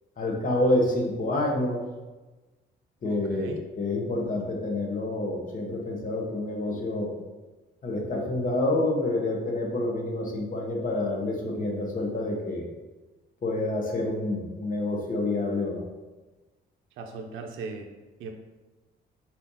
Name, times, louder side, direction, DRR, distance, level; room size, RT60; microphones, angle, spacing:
voice 1, 0.2-1.8 3.0-7.1 7.8-12.7 13.4-15.8, left 2 dB, 45° left, 0 dB, 1.0 m, -28 dB
voice 2, 3.0-3.6 17.0-17.9 18.2-18.3, right 4 dB, 85° right, 3 dB, 0.5 m, -38 dB
4.2 x 2.8 x 3.8 m, 1.2 s
cardioid pair, 90°, 20 cm